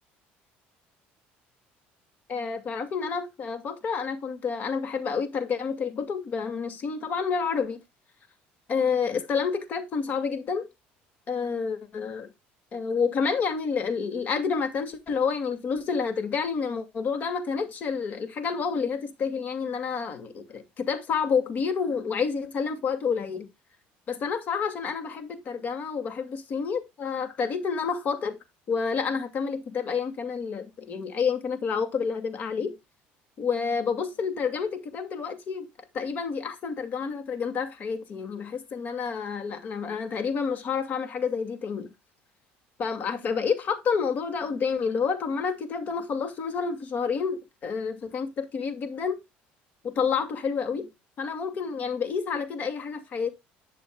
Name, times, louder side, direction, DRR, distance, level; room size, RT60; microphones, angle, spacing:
voice 1, 2.3-7.8 8.7-10.7 11.3-12.3 12.7-23.5 24.1-28.4 28.7-32.8 33.4-35.7 35.9-41.9 42.8-49.2 49.8-50.9 51.2-53.3, left 5 dB, 45° left, 2.3 m, -29 dB
11.5 x 7.1 x 2.3 m
cardioid pair, 125°, 4 cm